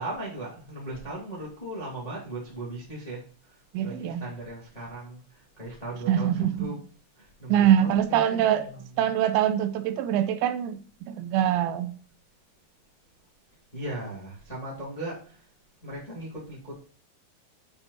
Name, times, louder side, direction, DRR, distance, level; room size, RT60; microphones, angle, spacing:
voice 1, 0.0-6.7 7.1-9.1 13.7-15.5 15.8-16.8, right 2 dB, 20° left, 1.1 m, -38 dB
voice 2, 3.7-4.2 6.1-6.7 7.5-8.7 9.0-11.9, right 10 dB, 85° right, 3.5 m, -24 dB
8.5 x 5.4 x 4.1 m
omnidirectional pair, 6.0 m